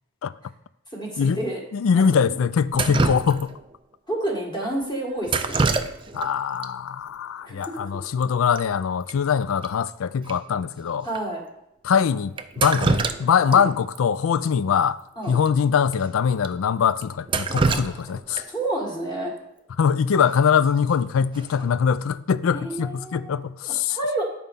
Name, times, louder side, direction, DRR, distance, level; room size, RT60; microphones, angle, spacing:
voice 1, 0.9-1.6 1.9-2.4 2.8-3.1 4.1-6.0 7.5-7.8 11.0-11.4 13.5-13.6 15.2-15.3 17.8-18.0 18.4-19.3 22.5-24.2, right 1 dB, 20° left, 1.9 m, -30 dB
voice 2, 1.7-3.6 6.1-11.1 11.8-15.0 15.3-18.4 19.8-24.0, left 7 dB, 75° left, 0.4 m, -22 dB
Drip, 2.7-3.7 5.2-6.3 6.6-6.7 7.6-7.7 8.0-8.2 8.5-8.6 9.1-9.2 9.6-9.7 10.3-10.4 11.1-11.2 12.4-13.6 13.9-14.0 15.4-15.5 15.9-16.0 16.4-16.5 17.0-18.6 20.6-20.9 21.3-21.7, right 4 dB, 25° right, 0.3 m, -25 dB
10.5 x 4.3 x 5.3 m
head